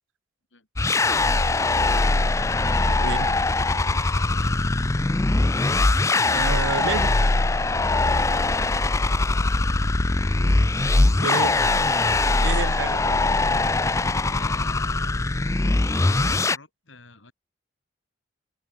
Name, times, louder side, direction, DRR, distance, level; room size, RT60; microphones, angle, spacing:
sound 1, 0.8-16.6, left 2 dB, 15° left, 0.4 m, -21 dB
voice 1, 2.3-5.3 6.0-7.3 8.0-8.3 10.7-11.2 14.2-17.3, left 3 dB, 80° left, 5.5 m, -47 dB
voice 2, 6.3-7.1 11.2-11.5 12.4-13.2, right 5 dB, 80° right, 0.6 m, -29 dB
head